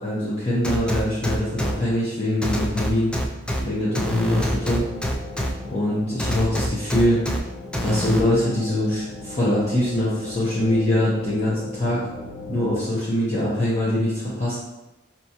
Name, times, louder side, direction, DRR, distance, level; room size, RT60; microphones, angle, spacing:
voice 1, 0.0-3.1 3.6-4.9 5.7-7.2 7.8-12.0 12.5-14.6, left 1 dB, 30° left, -9 dB, 0.8 m, -23 dB
sound 1, 0.6-1.7 2.4-3.6 4.0-5.5 6.2-7.4 7.7-8.2, left 1 dB, 5° left, 0.3 m, -25 dB
sound 2, 4.5-12.8, left 2 dB, 65° left, 1.0 m, -39 dB
4.7 x 2.9 x 2.8 m, 1.0 s
head